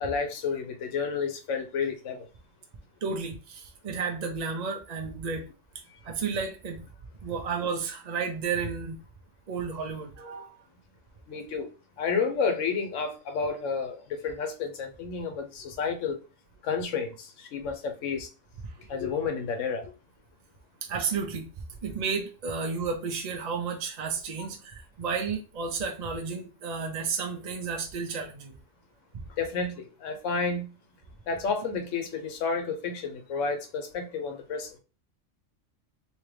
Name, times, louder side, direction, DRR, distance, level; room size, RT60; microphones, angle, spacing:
voice 1, 0.0-2.3 11.3-11.7 12.0-16.2 16.6-18.3 18.9-19.9 29.4-30.7 31.3-34.8, left 5 dB, 70° left, 1.0 m, -31 dB
voice 2, 3.0-5.5 6.0-6.9 7.2-9.0 9.5-10.5 18.6-18.7 20.8-21.5 21.8-28.5, right 5 dB, 45° right, 0.5 m, -32 dB
3.5 x 2.9 x 3.2 m
omnidirectional pair, 1.3 m